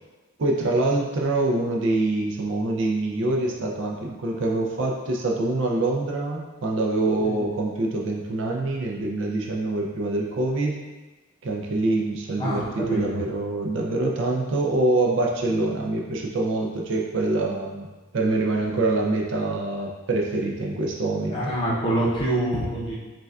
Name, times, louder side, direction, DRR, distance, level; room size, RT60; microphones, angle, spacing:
voice 1, 0.4-10.8 11.4-17.9 18.1-21.5, right 2 dB, 55° right, 0 dB, 0.4 m, -25 dB
voice 2, 12.4-13.2 21.3-22.9, right 1 dB, 20° left, -6 dB, 0.6 m, -26 dB
4.9 x 2.3 x 2.3 m, 1.2 s
head